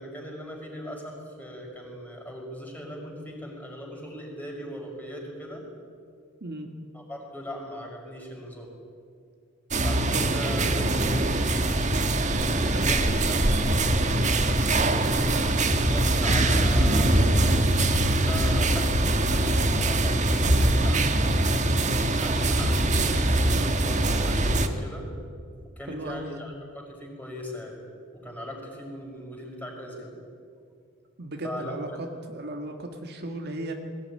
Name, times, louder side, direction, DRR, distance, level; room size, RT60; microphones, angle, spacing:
voice 1, 0.0-5.6 6.9-8.7 9.8-11.1 12.5-13.4 15.8-17.6 18.2-21.7 22.2-25.1 25.8-27.8 28.1-30.2 31.4-31.8, equal, 10° left, -1 dB, 5.7 m, -39 dB
sound 1, 9.7-24.7, right 1 dB, 35° right, 1.5 m, -23 dB
voice 2, 12.5-12.9 25.9-26.4 31.2-33.7, right 1 dB, 50° right, 3 dB, 1.8 m, -36 dB
21.0 x 17.5 x 9.9 m, 2.2 s
head